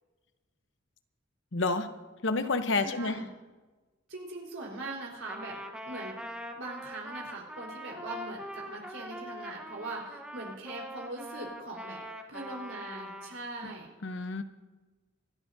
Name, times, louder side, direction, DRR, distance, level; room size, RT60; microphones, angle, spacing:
voice 1, 1.5-1.9 2.2-3.3 13.6-13.7 14.0-14.4, left 3 dB, 65° left, 9 dB, 0.9 m, -29 dB
voice 2, 2.8-3.3 4.1-6.2 6.5-12.0 12.3-13.9, right 2 dB, 85° right, -2 dB, 4.1 m, -41 dB
Trumpet, 5.3-13.4, equal, 5° right, 0.9 m, -43 dB
26.0 x 12.0 x 2.7 m, 1.2 s
head